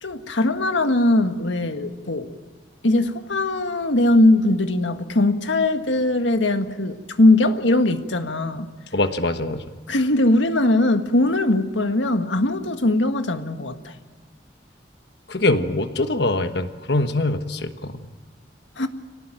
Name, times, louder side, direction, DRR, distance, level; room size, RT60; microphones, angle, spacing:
voice 1, 0.0-2.4 2.8-8.7 9.9-13.9 18.8-18.9, left 2 dB, 80° left, 7 dB, 1.7 m, -20 dB
voice 2, 8.9-9.6 15.3-17.9, left 2 dB, 60° left, 8 dB, 1.4 m, -23 dB
25.5 x 18.5 x 9.1 m, 1.5 s
head